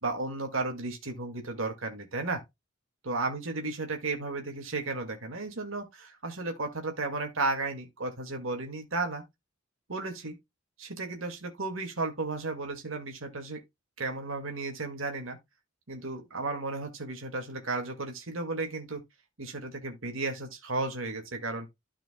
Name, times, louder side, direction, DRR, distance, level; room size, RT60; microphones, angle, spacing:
voice 1, 0.0-2.4 3.0-9.2 9.9-10.4 10.8-13.6 14.0-15.4 15.9-19.0 19.4-21.7, right 3 dB, 70° right, 2.1 m, -34 dB
13.0 x 4.9 x 2.2 m
head